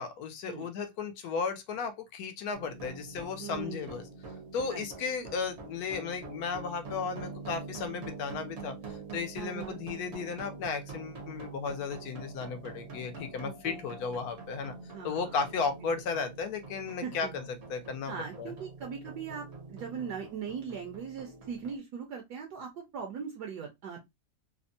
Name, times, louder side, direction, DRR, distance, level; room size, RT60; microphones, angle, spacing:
voice 1, 0.0-4.1 4.5-14.7 15.0-18.1 18.4-18.5, left 5 dB, 70° left, 0.9 m, -35 dB
sound 1, 2.5-21.8, right 3 dB, 50° right, 0.8 m, -45 dB
voice 2, 3.4-3.9 4.7-4.9 9.4-9.8 13.4-13.8 14.9-15.4 17.0-17.3 18.1-24.0, right 6 dB, 70° right, 1.1 m, -40 dB
3.4 x 2.0 x 2.5 m
omnidirectional pair, 2.0 m